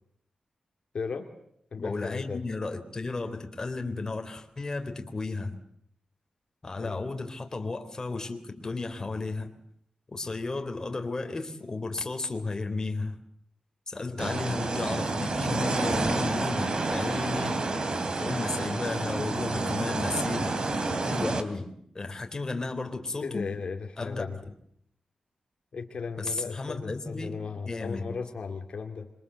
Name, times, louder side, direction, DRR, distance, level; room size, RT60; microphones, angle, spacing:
voice 1, 0.9-1.3 1.7-2.4 6.8-7.0 14.1-14.4 23.2-24.4 25.7-29.1, left 5 dB, 60° left, 4 dB, 2.5 m, -36 dB
voice 2, 1.8-5.6 6.6-9.5 10.1-13.2 13.9-17.6 17.9-20.6 21.0-21.7 21.9-23.5 24.0-24.3 26.2-27.4 27.7-28.1, left 3 dB, 30° left, 5 dB, 3.6 m, -33 dB
sound 1, 14.2-21.4, right 3 dB, 45° right, 3.1 m, -29 dB
27.0 x 24.0 x 8.1 m, 0.70 s
wide cardioid pair, 135°, 2 cm